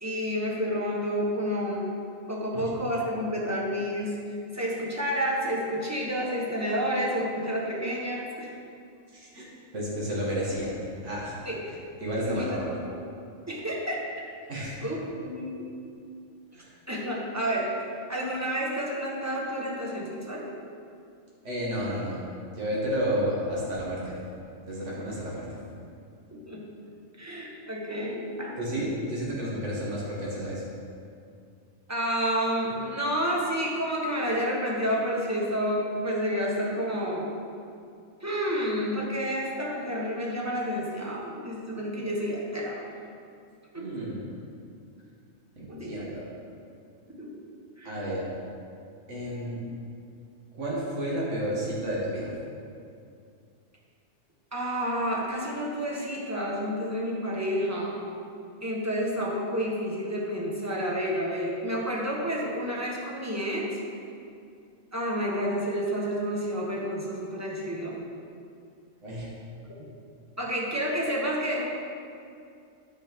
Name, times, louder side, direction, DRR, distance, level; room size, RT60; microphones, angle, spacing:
voice 1, 0.0-1.9 2.3-8.5 11.4-11.6 12.2-12.6 13.5-14.0 14.4-14.5 14.8-15.7 16.9-17.7 18.1-20.5 25.0-25.1 26.3-26.6 27.2-28.6 31.9-37.3 38.2-42.9 43.7-44.0 45.7-46.1 47.2-47.4 47.8-48.0 54.5-58.0 58.6-63.8 64.9-68.0 69.6-69.7 70.4-71.6, equal, 15° right, -4 dB, 1.3 m, -30 dB
voice 2, 9.1-9.4 9.7-11.4 11.7-12.7 14.5-14.8 16.5-16.7 21.4-22.2 22.5-24.2 24.6-25.6 28.6-30.6 43.8-44.2 45.6-46.2 47.8-48.3 49.1-49.6 50.5-52.3 69.0-69.3, equal, 65° right, -6 dB, 2.0 m, -31 dB
9.2 x 5.3 x 5.2 m, 2.4 s
omnidirectional pair, 1.4 m